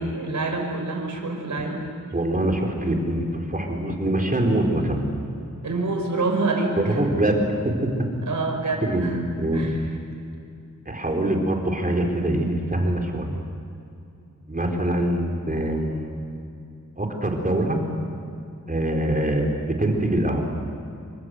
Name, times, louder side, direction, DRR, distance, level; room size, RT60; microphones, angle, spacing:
voice 1, 0.0-1.8 5.6-7.0 8.2-9.2 9.5-9.7, right 3 dB, 75° right, 3 dB, 5.4 m, -26 dB
voice 2, 2.1-5.0 6.8-7.4 7.6-7.7 8.8-9.7 10.9-13.3 14.5-16.0 17.0-17.8 18.7-20.5, right 1 dB, 30° right, 1 dB, 4.1 m, -24 dB
27.5 x 25.0 x 8.0 m, 2.6 s
wide cardioid pair, 115°, 30 cm